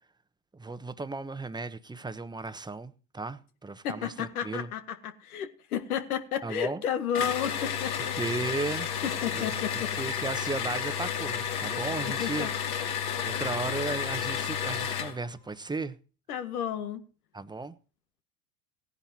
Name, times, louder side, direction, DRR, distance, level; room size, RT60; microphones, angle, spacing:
voice 1, 0.5-4.7 6.4-6.8 8.1-8.9 9.3-12.5 13.2-16.0 17.3-17.8, right 3 dB, 10° right, 1.1 m, -35 dB
voice 2, 3.8-8.2 9.0-9.9 12.0-12.5 16.3-17.0, left 8 dB, 80° left, 1.8 m, -32 dB
sound 1, 7.1-15.2, left 8 dB, 55° left, 3.1 m, -31 dB
18.0 x 10.5 x 2.8 m
hypercardioid pair, 75°, 44 cm